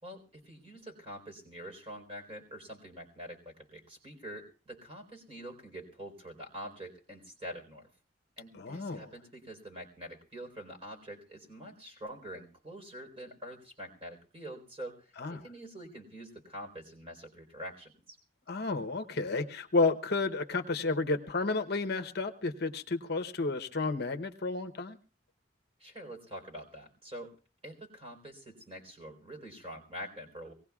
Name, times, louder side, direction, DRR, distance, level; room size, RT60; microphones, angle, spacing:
voice 1, 0.0-7.9 8.4-18.2 25.8-27.3 27.6-30.5, equal, 30° right, 1 dB, 4.1 m, -46 dB
voice 2, 8.5-9.1 15.2-15.4 18.5-25.0, left 3 dB, 55° left, 5 dB, 0.9 m, -31 dB
24.0 x 18.5 x 2.4 m, 0.36 s
head